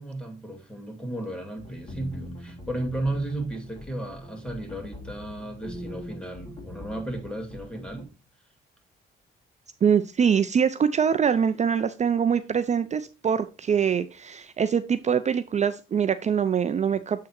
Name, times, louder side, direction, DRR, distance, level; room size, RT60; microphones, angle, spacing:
voice 1, 0.0-8.1, right 1 dB, 5° left, 2.1 m, -34 dB
sound 1, 1.6-8.0, left 1 dB, 30° left, 3.8 m, -42 dB
voice 2, 9.8-17.3, right 7 dB, 35° right, 0.4 m, -24 dB
7.6 x 3.7 x 4.3 m
cardioid pair, 90°, 20 cm